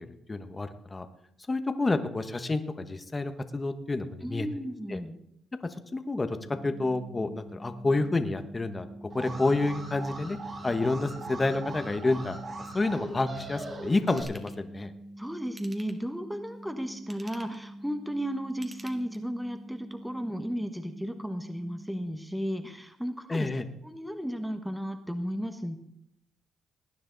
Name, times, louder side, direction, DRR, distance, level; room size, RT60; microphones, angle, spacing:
voice 1, 0.3-1.1 1.5-4.5 4.9-5.0 5.9-6.4 6.6-8.9 9.1-10.4 10.6-12.4 12.7-14.9 23.3-23.6, left 2 dB, 25° left, 9 dB, 1.2 m, -29 dB
voice 2, 4.2-5.2 15.2-23.5 23.8-25.8, equal, 5° right, 7 dB, 1.2 m, -34 dB
sound 1, 6.4-22.1, right 1 dB, 80° left, 2.4 m, -46 dB
Alarm, 9.1-14.2, right 2 dB, 50° right, 3.9 m, -40 dB
Ratchet pawl / Tools, 14.1-14.6 15.5-16.2 16.9-17.7 18.5-19.4 19.9-20.0, right 2 dB, 25° right, 1.8 m, -51 dB
19.0 x 9.9 x 4.0 m, 0.74 s
cardioid pair, 90°, 0 cm